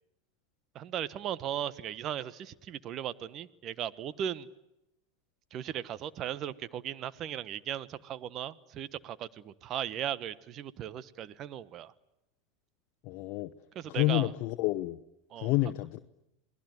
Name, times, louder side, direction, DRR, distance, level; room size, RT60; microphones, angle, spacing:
voice 1, 0.7-4.5 5.5-11.9 13.7-14.3 15.3-15.5, right 10 dB, 45° right, 16 dB, 1.2 m, -37 dB
voice 2, 13.0-13.5 13.9-15.0 15.4-16.0, left 18 dB, 55° left, 8 dB, 1.0 m, -29 dB
27.5 x 20.0 x 9.5 m, 0.88 s
hypercardioid pair, 100°, 0 cm